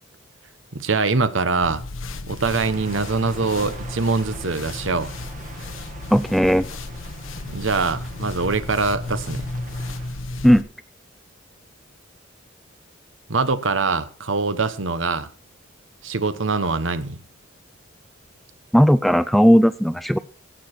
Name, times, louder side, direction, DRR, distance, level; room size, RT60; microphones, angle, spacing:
voice 1, 0.7-1.8 2.3-5.1 5.6-5.7 7.5-9.5 13.3-15.3 16.0-17.2, right 4 dB, 70° right, 1.1 m, -23 dB
sound 1, 1.6-10.6, left 2 dB, 80° left, 1.0 m, -34 dB
sound 2, 2.5-10.1, right 3 dB, 40° right, 1.6 m, -43 dB
voice 2, 6.1-6.7 10.4-10.7 18.7-20.2, equal, ahead, 0.4 m, -16 dB
16.0 x 6.9 x 4.4 m
head